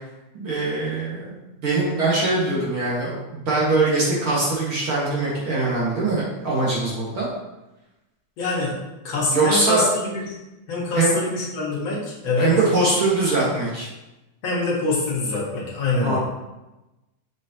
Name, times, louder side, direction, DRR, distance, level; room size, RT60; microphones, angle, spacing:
voice 1, 0.3-1.4 1.6-3.2 3.5-7.3 9.3-9.8 11.0-11.2 12.4-13.9 16.0-16.2, right 3 dB, 50° right, -6 dB, 2.2 m, -22 dB
voice 2, 8.4-8.7 9.0-10.4 10.7-12.5 14.4-16.2, left 3 dB, 60° left, -5 dB, 2.5 m, -24 dB
7.4 x 6.4 x 2.8 m, 1.0 s
omnidirectional pair, 3.4 m